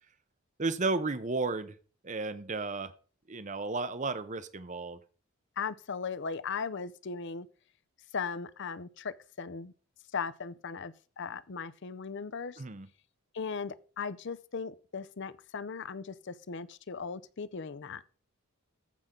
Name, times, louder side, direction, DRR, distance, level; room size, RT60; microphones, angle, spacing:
voice 1, 0.6-1.8 2.0-2.9 3.3-5.0 12.6-12.9, right 3 dB, 35° right, 0.7 m, -33 dB
voice 2, 5.6-7.5 8.1-9.7 10.1-12.6 13.3-18.1, left 5 dB, 55° left, 0.6 m, -38 dB
14.5 x 5.7 x 3.8 m
head